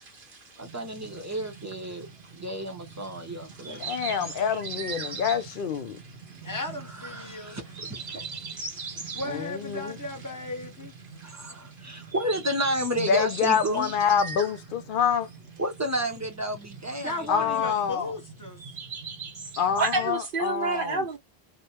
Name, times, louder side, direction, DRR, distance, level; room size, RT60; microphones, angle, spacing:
voice 1, 0.0-0.7 3.6-4.1 8.5-9.2 11.2-11.3 11.8-12.0 19.8-21.2, right 3 dB, 65° right, 0.7 m, -31 dB
voice 2, 0.6-3.8 6.8-8.3 11.2-13.9 15.6-17.8, right 1 dB, 20° right, 0.5 m, -32 dB
sound 1, 0.6-20.1, right 5 dB, 85° right, 1.3 m, -41 dB
voice 3, 3.8-6.0 9.3-10.0 13.0-15.3 17.3-18.1 19.6-21.1, left 7 dB, 60° left, 0.7 m, -26 dB
voice 4, 6.4-7.6 8.1-10.9 11.2-11.5 11.9-12.0 17.0-18.6, left 1 dB, 20° left, 0.8 m, -36 dB
2.4 x 2.1 x 2.9 m
omnidirectional pair, 1.0 m